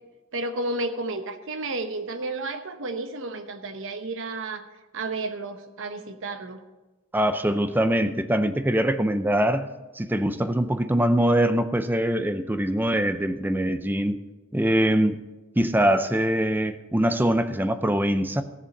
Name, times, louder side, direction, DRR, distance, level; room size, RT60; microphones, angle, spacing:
voice 1, 0.3-4.6 4.9-6.6, right 2 dB, 60° right, 8 dB, 1.0 m, -32 dB
voice 2, 7.1-9.7 10.0-14.2 14.5-15.2 15.6-18.4, right 1 dB, 10° right, 10 dB, 0.5 m, -23 dB
15.0 x 7.1 x 5.3 m, 1.1 s
head